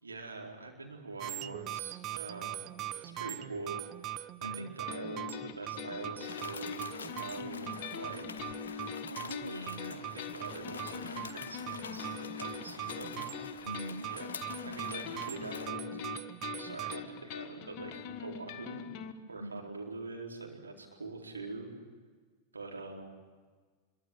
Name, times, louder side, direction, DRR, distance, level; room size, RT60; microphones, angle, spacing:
voice 1, 0.0-2.7 3.0-4.0 4.4-8.4 9.8-13.2 14.1-14.3 14.6-16.0 16.5-18.8 19.3-21.7 22.5-23.0, right 3 dB, 75° right, 0 dB, 4.2 m, -44 dB
sound 1, 1.2-17.0, right 13 dB, 35° right, 0.7 m, -42 dB
voice 2, 4.4-4.7 9.1-10.0 13.6-14.1 19.4-19.8, equal, 90° left, 12 dB, 0.7 m, -42 dB
sound 2, 4.9-19.1, left 7 dB, 40° left, 1.6 m, -43 dB
sound 3, 6.2-15.7, left 6 dB, 65° left, 1.1 m, -47 dB
25.5 x 23.5 x 7.7 m, 1.5 s
figure-of-eight pair, 90°, 0 cm